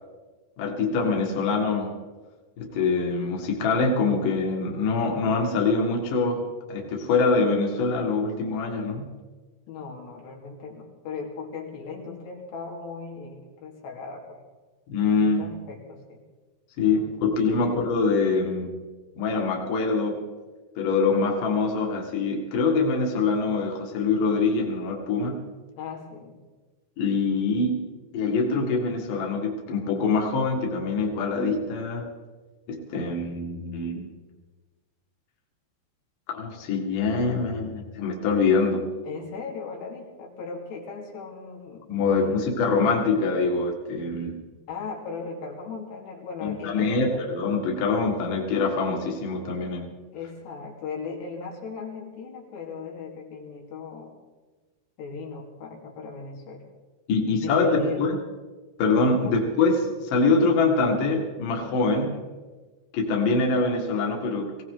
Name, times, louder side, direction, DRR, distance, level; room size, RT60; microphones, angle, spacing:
voice 1, 0.6-2.0 2.6-6.4 6.7-9.1 14.9-15.5 16.8-18.8 19.2-20.2 20.8-25.5 27.0-32.1 32.7-34.1 36.3-38.8 41.9-44.4 46.4-49.9 57.1-58.1 58.8-62.2 62.9-64.6, left 4 dB, 60° left, 0 dB, 3.2 m, -24 dB
voice 2, 9.7-14.4 15.1-16.2 16.9-17.8 25.8-26.4 39.0-42.5 44.7-47.4 50.1-54.1 55.0-56.7 57.3-58.1 59.2-59.4, left 5 dB, 85° left, -1 dB, 4.5 m, -37 dB
20.5 x 17.0 x 3.9 m, 1.3 s
omnidirectional pair, 4.8 m